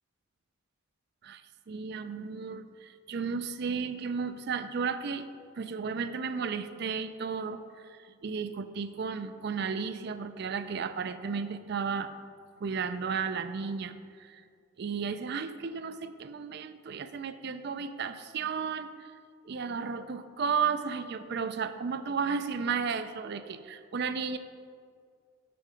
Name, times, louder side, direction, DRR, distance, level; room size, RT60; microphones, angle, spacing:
voice 1, 1.7-5.3 5.6-7.6 7.9-12.1 12.6-14.4 14.8-19.1 19.5-24.4, right 5 dB, 50° right, 11 dB, 0.4 m, -33 dB
7.7 x 5.5 x 5.0 m, 2.1 s
head